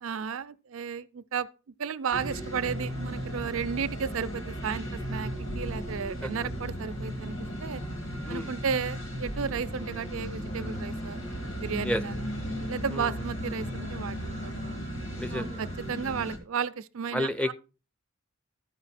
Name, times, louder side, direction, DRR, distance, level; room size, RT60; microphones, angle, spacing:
voice 1, 0.0-7.4 7.6-7.8 8.3-11.2 11.5-12.1 12.7-14.8 15.3-17.5, right 6 dB, 75° right, 0.5 m, -33 dB
sound 1, 2.1-16.4, equal, 65° left, 2.1 m, -35 dB
voice 2, 15.2-15.6 17.1-17.5, left 1 dB, 5° left, 0.4 m, -30 dB
13.5 x 5.2 x 4.2 m
head